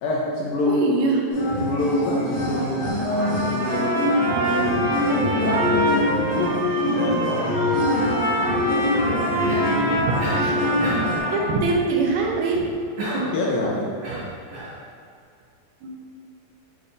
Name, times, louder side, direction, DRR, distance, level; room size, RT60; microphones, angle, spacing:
voice 1, 0.0-0.9 1.6-6.5 6.9-7.6 11.2-11.5 13.2-13.9, left 1 dB, 80° left, -5 dB, 2.4 m, -26 dB
voice 2, 0.7-1.2 9.4-9.7 10.1-10.6 11.3-12.7 14.1-14.3 15.8-16.0, right 3 dB, 85° right, 0 dB, 2.5 m, -24 dB
sound 1, 1.3-11.2, left 1 dB, 55° left, 2.3 m, -24 dB
Trumpet, 3.2-11.6, right 1 dB, 70° right, 3.2 m, -26 dB
Cough, 9.5-9.8 10.2-10.5 10.8-11.2 13.0-13.4 14.0-14.8, right 1 dB, 45° right, 1.8 m, -30 dB
9.0 x 4.2 x 2.5 m, 2.3 s
omnidirectional pair, 4.3 m